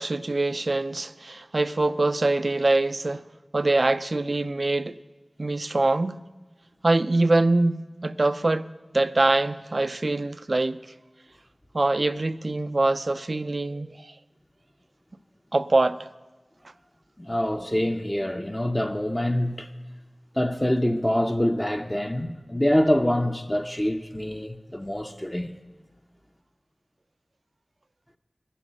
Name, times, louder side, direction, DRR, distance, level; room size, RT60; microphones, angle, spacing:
voice 1, 0.0-3.3 3.5-5.0 5.4-6.2 6.8-8.7 8.9-10.8 11.7-14.1 15.5-16.1, right 2 dB, 60° right, 0.4 m, -24 dB
voice 2, 17.2-19.7 20.4-25.5, left 1 dB, 20° left, 0.5 m, -25 dB
10.5 x 10.0 x 6.3 m
wide cardioid pair, 50°, 0 cm